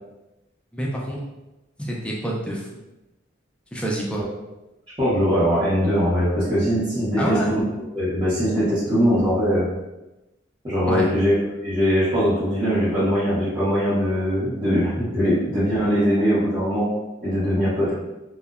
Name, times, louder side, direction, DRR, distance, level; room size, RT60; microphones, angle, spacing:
voice 1, 0.7-1.2 1.8-2.7 3.7-4.2 7.2-7.5 10.9-11.1, right 1 dB, 5° left, -3 dB, 0.3 m, -26 dB
voice 2, 5.0-7.7 7.9-9.6 10.6-16.9 17.2-17.9, equal, 25° right, -14 dB, 0.7 m, -21 dB
2.7 x 2.0 x 2.3 m, 0.99 s
head